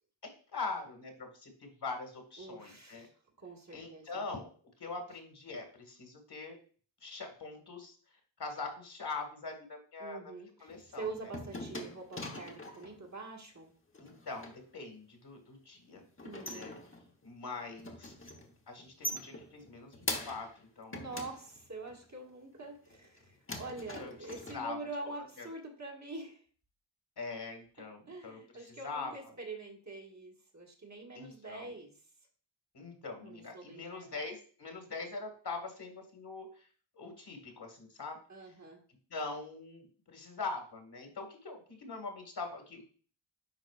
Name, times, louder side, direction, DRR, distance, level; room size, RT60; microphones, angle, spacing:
voice 1, 0.2-3.1 3.7-4.5 4.8-6.6 7.0-8.0 8.4-10.3 10.6-11.3 14.0-16.0 16.5-16.7 17.2-18.1 18.7-21.0 24.0-24.1 24.5-24.8 25.4-25.5 27.2-28.4 28.7-29.3 31.2-31.7 32.7-36.7 37.0-38.2 39.1-42.9, left 3 dB, 55° left, 3 dB, 1.9 m, -42 dB
voice 2, 2.4-3.1 3.4-4.3 10.0-13.7 16.2-16.7 20.9-26.4 28.1-31.9 33.2-34.2 38.3-38.8, right 3 dB, 35° right, 0 dB, 1.7 m, -45 dB
sound 1, 10.7-13.0 13.9-14.6 15.9-17.3 17.6-18.5 18.8-20.6 20.9-22.0 22.6-23.2 23.5-24.5, left 1 dB, 25° left, 1.1 m, -42 dB
10.5 x 3.9 x 2.4 m, 0.42 s
wide cardioid pair, 90°, 47 cm